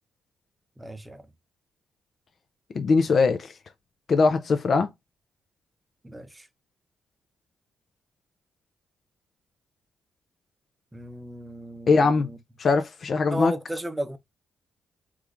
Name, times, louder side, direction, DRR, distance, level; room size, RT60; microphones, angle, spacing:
voice 1, 0.8-1.2 6.0-6.5 10.9-12.4 13.3-14.2, right 1 dB, 15° right, 0.7 m, -35 dB
voice 2, 2.7-3.5 4.1-4.9 11.9-12.3 12.6-13.5, left 4 dB, 55° left, 0.5 m, -21 dB
3.5 x 3.0 x 2.4 m
cardioid pair, 75°, 0 cm